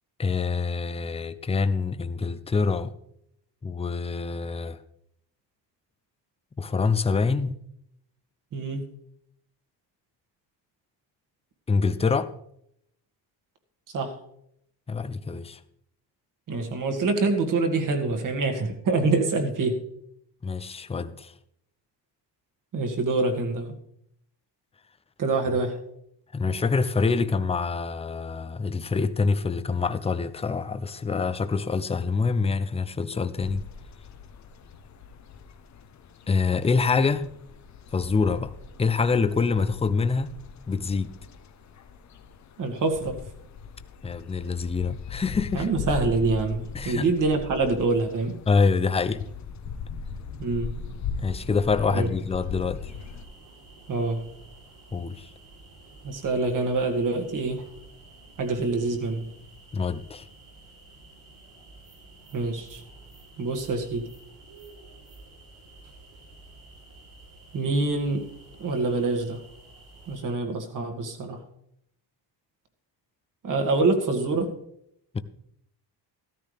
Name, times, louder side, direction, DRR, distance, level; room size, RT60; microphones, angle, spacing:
voice 1, 0.2-2.9 3.6-4.8 6.6-7.6 11.7-12.3 14.9-15.6 20.4-21.3 26.3-33.6 36.3-37.3 37.9-38.5 38.8-40.3 40.7-41.1 44.0-45.7 46.7-47.1 48.5-49.2 51.2-52.9 54.9-55.3 59.7-60.3 75.1-75.2, left 4 dB, 15° left, 0.5 m, -25 dB
voice 2, 8.5-8.9 13.9-14.1 16.5-19.8 22.7-23.7 25.2-25.8 42.6-43.2 45.5-48.4 50.4-50.7 51.9-52.1 53.9-54.2 56.0-57.6 58.4-59.3 62.3-62.8 63.4-64.1 67.5-68.3 68.6-69.4 70.1-71.4 73.4-74.5, right 3 dB, 45° right, 2.1 m, -25 dB
sound 1, 33.4-53.2, left 5 dB, 40° left, 0.9 m, -39 dB
sound 2, 52.9-70.2, right 2 dB, 75° right, 6.7 m, -50 dB
14.5 x 13.5 x 3.4 m
cardioid pair, 140°, 43 cm